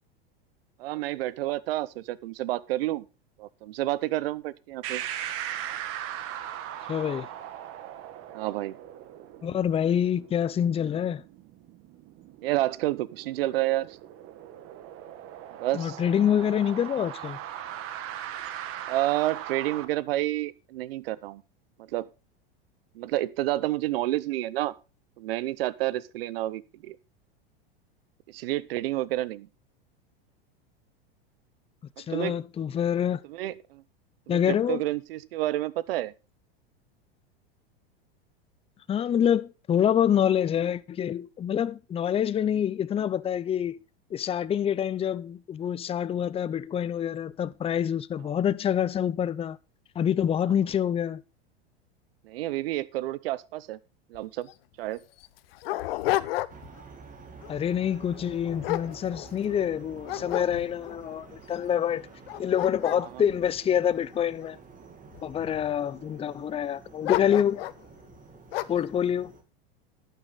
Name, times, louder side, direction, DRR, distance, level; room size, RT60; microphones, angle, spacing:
voice 1, 0.8-3.1 3.4-5.0 8.3-8.8 12.4-14.0 15.6-16.0 18.9-21.4 21.9-22.1 22.9-24.7 25.2-27.0 28.3-29.5 32.1-32.4 33.2-33.8 34.3-36.1 48.2-48.4 50.4-50.5 52.2-53.8 54.1-54.5 54.8-55.0 63.0-63.2, right 16 dB, 75° right, 0.8 m, -29 dB
sound 1, 4.8-19.8, right 11 dB, 45° right, 1.5 m, -39 dB
voice 2, 6.9-7.3 9.4-11.2 15.7-17.4 32.1-33.2 34.3-34.8 38.9-43.8 44.1-49.6 50.0-51.2 57.5-62.0 62.4-64.6 65.2-67.6 68.7-69.3, left 9 dB, 20° left, 0.6 m, -26 dB
Dog, 54.1-54.2 54.5-54.6 55.2-56.8 57.2-57.5 58.1-59.6 60.0-61.0 61.6-61.7 62.1-64.5 65.1-65.7 67.0-67.8 68.5-68.9, left 16 dB, 70° left, 0.9 m, -32 dB
sound 2, 56.5-69.4, right 5 dB, 25° right, 2.2 m, -49 dB
11.5 x 9.3 x 4.0 m
hypercardioid pair, 105°, 30 cm